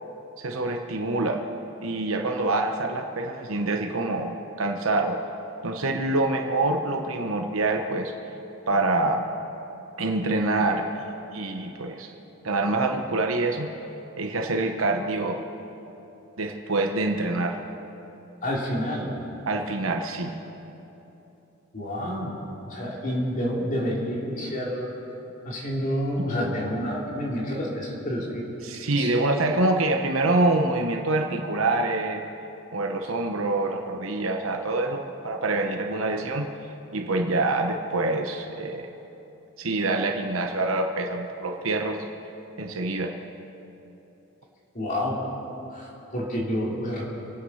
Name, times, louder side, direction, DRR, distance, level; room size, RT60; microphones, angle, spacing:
voice 1, 0.4-1.4 1.8-5.2 5.6-8.1 8.7-9.3 10.0-10.9 11.3-12.1 12.4-13.7 14.2-15.4 16.4-17.6 19.5-20.3 26.2-26.3 28.6-32.2 32.7-36.5 36.9-38.9 39.6-42.0 42.6-43.2, right 2 dB, 75° right, 4 dB, 1.1 m, -26 dB
voice 2, 18.4-19.1 21.7-24.9 25.4-28.5 28.9-29.4 44.7-45.2 45.7-47.1, equal, 40° left, -4 dB, 3.0 m, -29 dB
26.5 x 9.5 x 5.7 m, 3.0 s
head